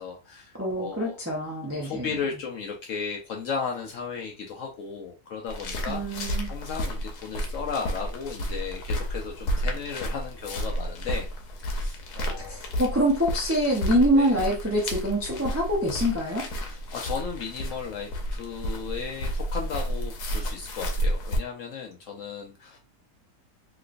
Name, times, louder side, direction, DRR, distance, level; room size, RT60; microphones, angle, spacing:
voice 1, 0.0-1.2 1.7-6.0 6.5-11.3 11.6-12.6 14.1-14.3 16.7-22.8, left 5 dB, 65° left, 0 dB, 0.8 m, -35 dB
voice 2, 0.6-2.1 5.9-6.5 12.5-16.5, equal, 20° right, -2 dB, 0.4 m, -25 dB
sound 1, 5.5-21.4, equal, 90° left, 1.3 m, -31 dB
3.0 x 3.0 x 2.5 m, 0.31 s
omnidirectional pair, 1.7 m